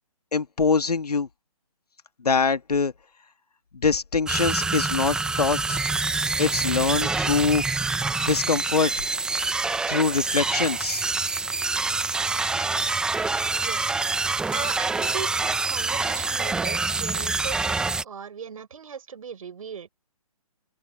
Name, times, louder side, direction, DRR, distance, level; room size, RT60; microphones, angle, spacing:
voice 1, 0.3-1.3 2.2-2.9 3.7-5.8 6.4-7.8 8.2-8.9 9.9-11.0, left 5 dB, 85° left, 1.8 m, -24 dB
sound 1, 4.3-18.0, right 3 dB, 5° right, 0.9 m, -26 dB
voice 2, 13.6-13.9 14.5-19.9, right 6 dB, 65° right, 5.5 m, -38 dB
open air
hypercardioid pair, 150°, 19 cm